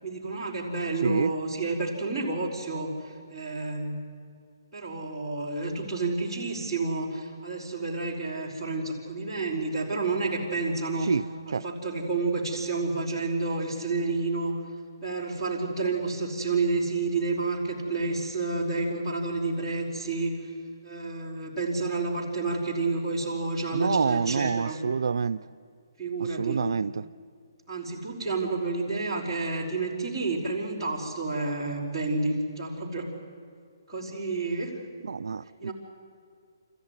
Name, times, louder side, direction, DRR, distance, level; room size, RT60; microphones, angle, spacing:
voice 1, 0.0-4.0 4.7-14.6 15.0-20.3 20.8-24.8 26.0-26.7 27.7-33.1 33.9-34.7 35.6-35.7, right 3 dB, 5° left, -6 dB, 4.4 m, -30 dB
voice 2, 1.0-1.3 11.1-11.2 11.5-11.6 23.7-25.4 26.4-26.9 35.1-35.7, right 5 dB, 70° right, 13 dB, 0.5 m, -26 dB
26.5 x 14.5 x 9.7 m, 2.2 s
hypercardioid pair, 170°, 2 cm